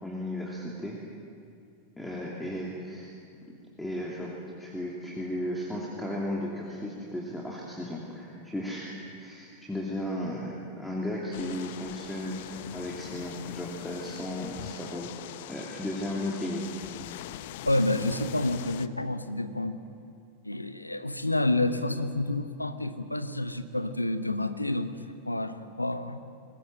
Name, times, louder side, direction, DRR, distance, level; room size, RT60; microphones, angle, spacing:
voice 1, 0.0-1.0 2.0-3.1 3.8-4.3 4.6-15.1 15.5-16.7, left 1 dB, 5° left, -4 dB, 2.8 m, -35 dB
sound 1, 11.3-18.9, left 13 dB, 50° left, 0.7 m, -42 dB
voice 2, 17.6-19.8 20.4-26.2, left 2 dB, 85° left, 11 dB, 1.0 m, -29 dB
21.5 x 20.0 x 7.7 m, 2.4 s
figure-of-eight pair, 90°, 0 cm